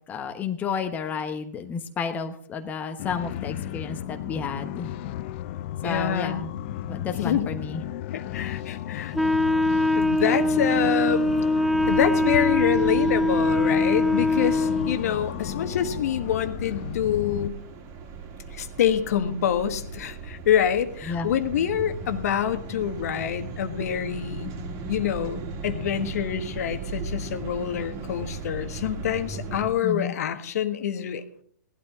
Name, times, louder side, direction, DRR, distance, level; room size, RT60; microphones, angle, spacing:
voice 1, 0.1-4.9 5.8-6.5 6.9-7.8 21.1-21.3 29.8-30.1, left 6 dB, 15° left, 5 dB, 1.2 m, -31 dB
sound 1, 3.0-17.5, left 12 dB, 40° left, 0.7 m, -34 dB
voice 2, 5.8-6.5 7.2-7.5 8.1-9.1 9.9-11.3 11.9-17.6 18.5-24.5 24.9-31.4, left 9 dB, 55° left, 9 dB, 1.4 m, -26 dB
Wind instrument woodwind instrument, 9.1-15.0, left 1 dB, ahead, 0.4 m, -22 dB
sound 2, 11.8-29.7, right 3 dB, 30° right, 2.5 m, -37 dB
18.0 x 11.5 x 3.8 m, 0.62 s
hypercardioid pair, 130°, 10 cm